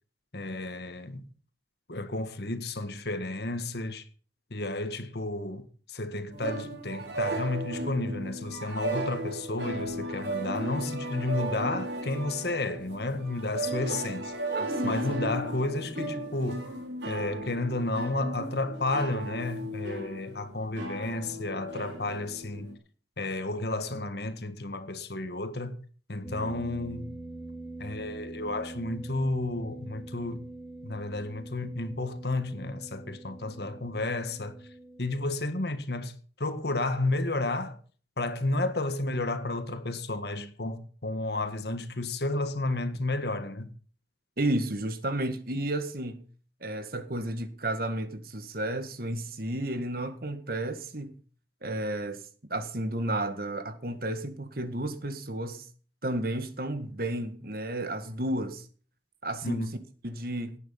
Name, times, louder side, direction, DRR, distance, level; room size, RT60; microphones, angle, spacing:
voice 1, 0.3-1.2 1.9-4.1 4.5-14.3 14.8-16.7 17.0-22.8 23.2-25.8 26.1-27.1 27.8-30.4 30.8-34.6 35.0-37.8 38.2-43.7 59.4-59.7, left 2 dB, 60° left, 1.7 m, -32 dB
sound 1, 6.3-22.7, right 1 dB, 70° right, 5.1 m, -35 dB
voice 2, 14.5-15.3 44.4-46.2 46.6-51.2 51.6-52.2 52.5-55.7 56.0-58.7 59.2-59.7 60.0-60.6, right 1 dB, 55° right, 1.8 m, -32 dB
sound 2, 26.2-35.3, right 2 dB, ahead, 4.2 m, -44 dB
18.0 x 9.3 x 5.8 m
head